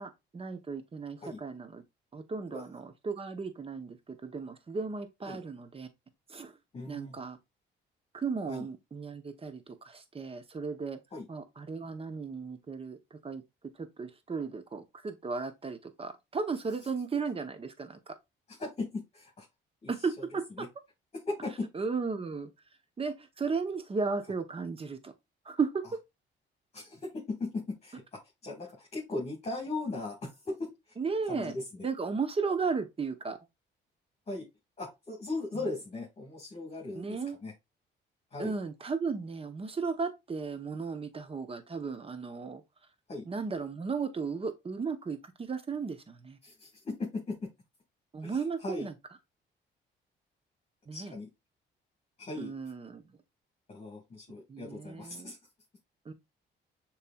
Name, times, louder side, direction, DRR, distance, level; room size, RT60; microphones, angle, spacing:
voice 1, 0.0-1.8 2.1-5.9 6.3-6.5 6.9-7.4 8.1-11.0 11.3-13.4 13.8-18.0 19.9-20.7 21.7-22.5 23.0-25.1 25.5-26.0 31.0-31.6 31.8-33.4 35.5-35.7 36.9-37.4 38.4-42.6 43.3-46.4 48.1-49.0 50.9-51.1 52.3-53.0 54.5-55.3 56.1-56.2, right 5 dB, 30° right, 0.8 m, -35 dB
voice 2, 6.7-7.2 8.5-8.6 11.1-11.2 18.5-19.4 19.8-19.9 20.6-20.7 21.3-21.6 26.7-28.0 28.4-30.7 31.3-31.8 34.3-34.4 34.8-37.5 38.3-38.5 43.1-43.2 46.4-47.3 48.2-48.9 50.9-51.3 52.2-52.5 53.7-55.4, left 2 dB, 30° left, 1.7 m, -38 dB
6.6 x 3.1 x 2.3 m
cardioid pair, 90°, 20 cm